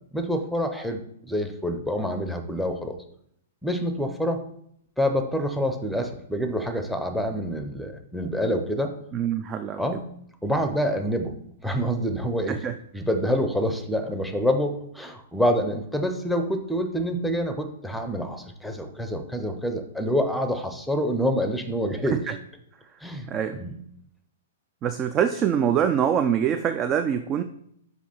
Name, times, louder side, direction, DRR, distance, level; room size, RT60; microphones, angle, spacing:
voice 1, 0.1-3.0 3.6-4.4 5.0-8.9 9.8-10.1 10.4-11.4 11.6-12.6 12.9-22.2 23.0-23.8, equal, ahead, 7 dB, 0.7 m, -27 dB
voice 2, 9.1-9.8 12.5-12.7 22.3-22.4 23.3-23.6 24.8-27.4, right 8 dB, 25° right, 9 dB, 0.3 m, -24 dB
5.8 x 4.7 x 4.3 m, 0.71 s
figure-of-eight pair, 110°, 0 cm